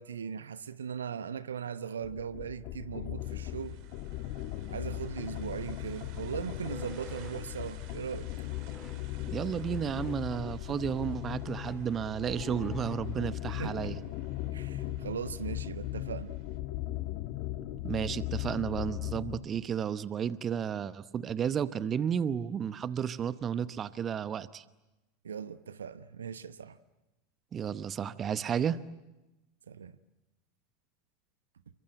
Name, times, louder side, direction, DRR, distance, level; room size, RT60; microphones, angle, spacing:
voice 1, 0.0-3.8 4.7-8.3 13.5-14.1 14.5-16.4 25.2-26.8 29.7-29.9, right 7 dB, 75° right, 1.0 m, -39 dB
sound 1, 2.0-19.5, left 14 dB, 50° left, 1.7 m, -38 dB
sound 2, 3.2-16.6, right 10 dB, 50° right, 3.1 m, -57 dB
sound 3, 6.7-13.4, left 3 dB, 20° left, 4.0 m, -52 dB
voice 2, 9.3-14.0 17.8-24.6 27.5-28.8, right 8 dB, 30° right, 0.9 m, -32 dB
29.5 x 24.0 x 7.9 m
figure-of-eight pair, 80°, 0 cm